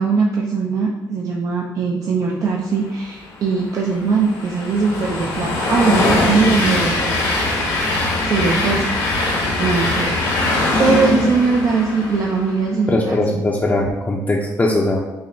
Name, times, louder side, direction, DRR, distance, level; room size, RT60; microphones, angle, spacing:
voice 1, 0.0-7.2 8.2-8.8 9.6-13.4, right 4 dB, 55° right, -1 dB, 0.5 m, -20 dB
Train, 3.2-12.7, left 2 dB, 70° left, 1.0 m, -21 dB
voice 2, 12.9-15.0, left 1 dB, 25° left, -3 dB, 0.5 m, -19 dB
5.7 x 2.1 x 2.7 m, 1.1 s
supercardioid pair, 65°, 7 cm